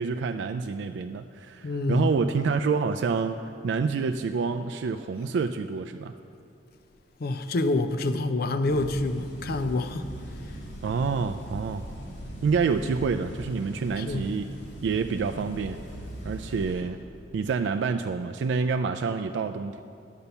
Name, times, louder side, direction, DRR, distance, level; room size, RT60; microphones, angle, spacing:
voice 1, 0.0-6.1 10.8-11.8 12.4-14.5 14.8-15.8 16.2-17.0 17.3-19.8, right 5 dB, 90° right, 0.3 m, -27 dB
voice 2, 1.6-2.1 7.2-10.1 14.0-14.3, left 2 dB, 60° left, 0.5 m, -27 dB
sound 1, 8.7-16.8, equal, 80° left, 2.3 m, -40 dB
10.5 x 5.5 x 6.9 m
head